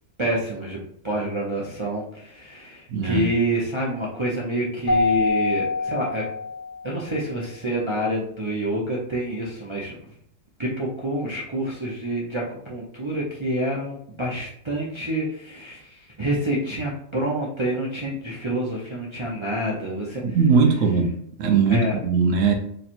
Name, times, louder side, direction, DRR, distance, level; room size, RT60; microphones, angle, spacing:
voice 1, 0.2-0.8 1.0-6.2 6.8-9.9 10.6-20.4 21.7-22.0, right 1 dB, 40° right, -4 dB, 0.4 m, -27 dB
voice 2, 2.9-3.3 20.2-21.1 21.4-22.5, right 5 dB, 70° right, 3 dB, 0.9 m, -19 dB
Keyboard (musical), 4.9-7.1, left 3 dB, 30° left, 1.1 m, -25 dB
4.3 x 3.2 x 2.5 m, 0.68 s
omnidirectional pair, 1.5 m